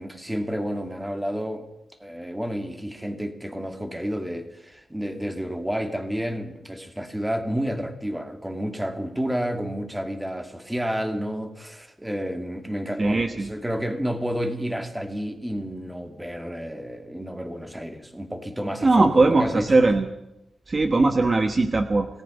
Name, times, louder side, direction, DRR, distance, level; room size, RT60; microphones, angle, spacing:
voice 1, 0.0-1.7 2.0-19.8, equal, 5° right, 6 dB, 2.5 m, -30 dB
voice 2, 13.0-13.5 18.8-20.1 20.7-22.1, right 3 dB, 30° right, 7 dB, 1.3 m, -20 dB
28.5 x 18.5 x 5.4 m, 0.88 s
wide cardioid pair, 155°, 0 cm